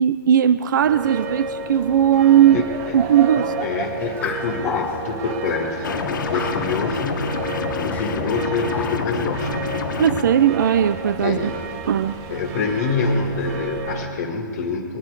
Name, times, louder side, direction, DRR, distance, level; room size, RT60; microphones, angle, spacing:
voice 1, 0.0-2.7 2.9-3.5 10.0-11.5 11.9-12.1, right 9 dB, 65° right, 14 dB, 0.5 m, -17 dB
sound 1, 0.8-14.1, right 4 dB, 25° right, 1.1 m, -32 dB
voice 2, 2.4-3.0 3.4-9.6 9.9-10.0 11.2-11.6 12.3-15.0, left 4 dB, 45° left, 2 dB, 1.7 m, -26 dB
sound 2, 4.0-5.4 6.3-6.9 7.9-8.3 8.7-9.2, left 7 dB, 15° left, 0.6 m, -31 dB
sound 3, 5.8-10.2, left 5 dB, 65° left, 1.4 m, -27 dB
21.0 x 10.5 x 4.8 m, 2.3 s
hypercardioid pair, 145°, 11 cm